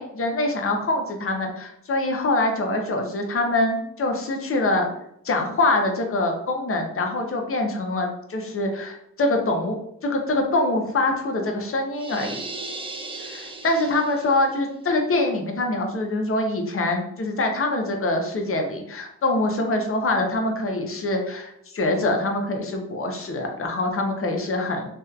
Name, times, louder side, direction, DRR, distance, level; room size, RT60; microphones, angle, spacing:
voice 1, 0.0-4.9 5.2-9.8 10.0-12.4 13.2-24.9, left 2 dB, 40° left, 3 dB, 0.6 m, -24 dB
sound 1, 12.0-14.5, right 3 dB, 15° right, 0.3 m, -36 dB
2.6 x 2.4 x 2.2 m, 0.76 s
cardioid pair, 50°, 35 cm